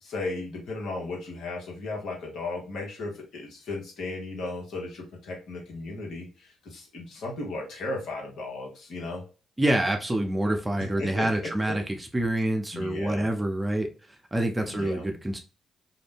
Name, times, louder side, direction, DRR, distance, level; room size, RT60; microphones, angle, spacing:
voice 1, 0.0-9.2 11.0-11.5 12.7-13.3 14.7-15.0, left 2 dB, 70° left, -1 dB, 1.0 m, -35 dB
voice 2, 9.6-13.9 14.3-15.4, right 1 dB, 20° right, 4 dB, 0.7 m, -27 dB
2.5 x 2.1 x 3.5 m, 0.35 s
hypercardioid pair, 45°, 0 cm